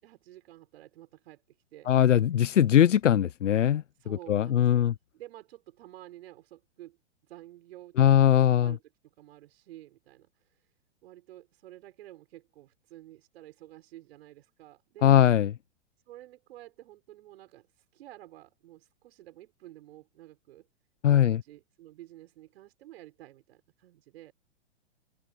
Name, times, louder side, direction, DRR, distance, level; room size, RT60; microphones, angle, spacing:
voice 1, 0.0-1.9 4.0-7.0 7.2-10.7 11.0-15.2 16.1-20.7 21.1-24.3, right 15 dB, 60° right, 6.6 m, -51 dB
voice 2, 1.9-3.8 4.3-4.9 8.0-8.7 15.0-15.5 21.0-21.4, left 10 dB, 80° left, 0.9 m, -21 dB
open air
hypercardioid pair, 120°, 36 cm